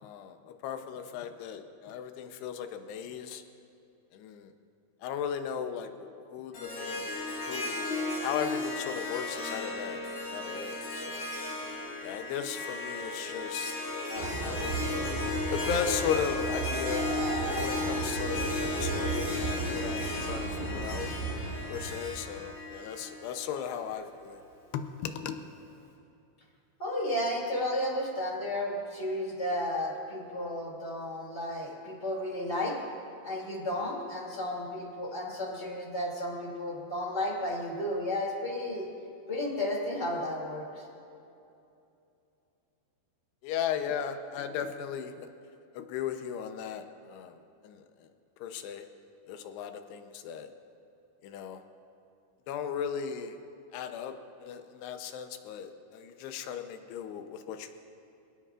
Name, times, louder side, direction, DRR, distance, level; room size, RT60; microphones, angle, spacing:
voice 1, 0.0-3.4 4.1-4.5 5.0-7.1 7.5-7.8 8.2-10.0 10.3-11.3 12.0-13.8 14.1-14.9 15.5-17.1 17.4-21.1 21.7-24.4 24.7-25.4 43.4-45.3 45.7-47.3 47.6-48.1 48.4-48.9 49.3-50.5 51.2-51.6 52.5-53.4 53.7-54.1 54.4-57.7, left 8 dB, 80° left, 7 dB, 2.9 m, -36 dB
Harp, 6.5-23.8, left 2 dB, 60° left, 5.4 m, -35 dB
Train, 14.2-22.3, right 4 dB, 55° right, 3.3 m, -35 dB
voice 2, 26.8-32.8 33.2-38.9 39.3-40.8, left 1 dB, 20° left, -2 dB, 2.3 m, -33 dB
27.0 x 18.0 x 2.5 m, 2.7 s
omnidirectional pair, 4.9 m